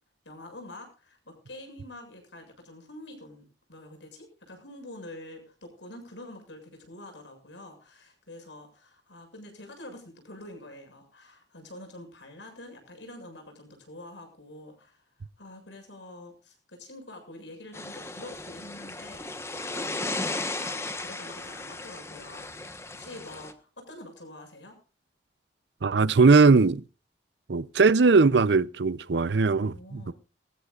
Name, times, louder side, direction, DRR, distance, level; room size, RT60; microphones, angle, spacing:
voice 1, 0.2-15.1 15.4-24.8 29.6-30.1, left 1 dB, 80° left, 7.2 m, -46 dB
sound 1, 17.7-23.5, left 2 dB, 15° left, 1.1 m, -35 dB
voice 2, 25.8-26.8 27.5-30.0, right 4 dB, 70° right, 0.6 m, -20 dB
21.5 x 14.5 x 2.5 m
head